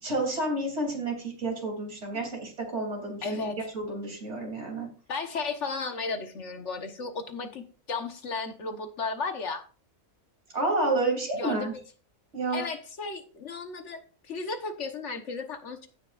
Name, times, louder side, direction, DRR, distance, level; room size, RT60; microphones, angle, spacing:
voice 1, 0.0-3.4 3.7-4.9 10.5-11.7 12.3-12.6, right 2 dB, 50° right, 0 dB, 3.5 m, -30 dB
voice 2, 3.2-3.6 5.1-9.6 11.3-11.7 12.5-14.0 14.3-15.9, left 4 dB, 55° left, 6 dB, 1.5 m, -34 dB
16.5 x 6.1 x 2.5 m, 0.37 s
omnidirectional pair, 1.5 m